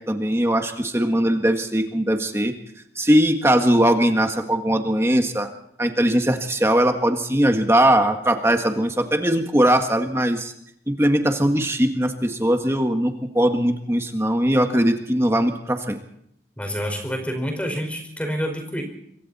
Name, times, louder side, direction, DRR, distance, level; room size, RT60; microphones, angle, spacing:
voice 1, 0.1-2.5 3.0-5.5 5.8-10.5 10.9-16.0, right 1 dB, 15° right, 5 dB, 1.6 m, -20 dB
voice 2, 16.6-18.8, equal, 10° left, 4 dB, 5.1 m, -27 dB
26.0 x 23.0 x 4.3 m, 0.73 s
head